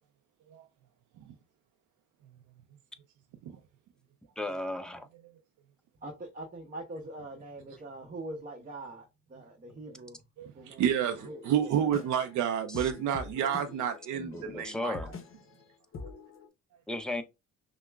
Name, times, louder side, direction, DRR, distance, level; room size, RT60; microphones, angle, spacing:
voice 1, 4.4-5.1 12.7-12.9 14.1-15.1 16.9-17.2, left 1 dB, 5° left, 0.5 m, -35 dB
voice 2, 6.0-10.2 10.5-12.2, right 2 dB, 30° right, 0.7 m, -43 dB
voice 3, 10.4-15.0, right 9 dB, 80° right, 0.5 m, -30 dB
sound 1, 11.1-16.5, left 4 dB, 45° left, 0.8 m, -46 dB
5.7 x 2.1 x 2.3 m
cardioid pair, 90°, 30 cm